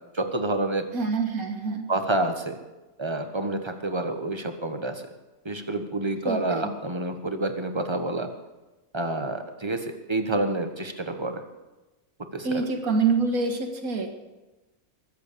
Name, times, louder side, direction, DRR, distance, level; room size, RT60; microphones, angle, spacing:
voice 1, 0.1-0.9 1.9-2.6 3.0-5.0 5.4-8.3 8.9-11.4 12.3-12.7, right 2 dB, 20° right, 6 dB, 1.3 m, -28 dB
voice 2, 0.9-1.8 6.2-6.7 12.4-14.1, right 4 dB, 75° right, 4 dB, 2.3 m, -26 dB
21.0 x 8.4 x 6.8 m, 1.1 s
omnidirectional pair, 1.5 m